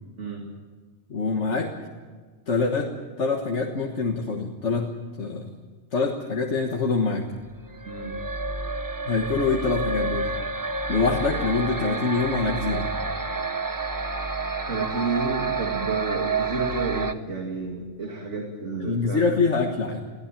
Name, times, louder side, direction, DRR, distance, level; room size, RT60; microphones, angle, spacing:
voice 1, 1.1-1.7 2.5-5.6 5.9-7.3 9.1-10.3 10.9-12.9 18.8-20.0, left 4 dB, 75° left, 2 dB, 1.8 m, -25 dB
sound 1, 7.7-17.1, right 3 dB, 20° right, 0.8 m, -29 dB
voice 2, 7.9-8.2 14.7-19.2, right 3 dB, 80° right, 1 dB, 2.6 m, -30 dB
23.0 x 16.0 x 9.1 m, 1.5 s
omnidirectional pair, 1.2 m